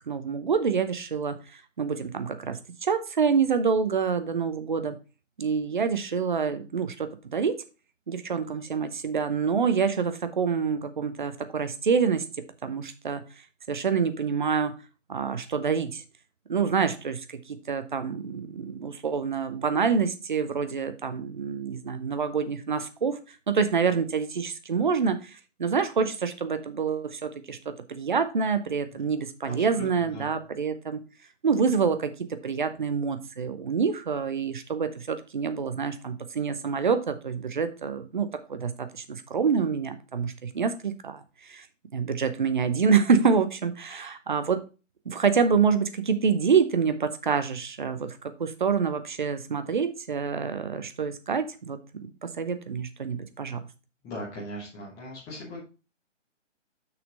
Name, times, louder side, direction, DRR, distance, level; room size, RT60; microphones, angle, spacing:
voice 1, 0.1-1.4 1.8-5.0 5.4-7.6 8.1-12.2 12.6-13.2 13.7-14.7 15.1-16.0 16.5-17.2 17.5-23.2 23.5-31.0 31.4-41.6 41.9-44.6 45.1-53.6, right 6 dB, 40° right, 10 dB, 0.8 m, -27 dB
voice 2, 29.4-30.4 54.0-55.6, left 1 dB, 10° left, -6 dB, 1.1 m, -39 dB
6.4 x 5.9 x 3.9 m, 0.32 s
figure-of-eight pair, 145°, 37 cm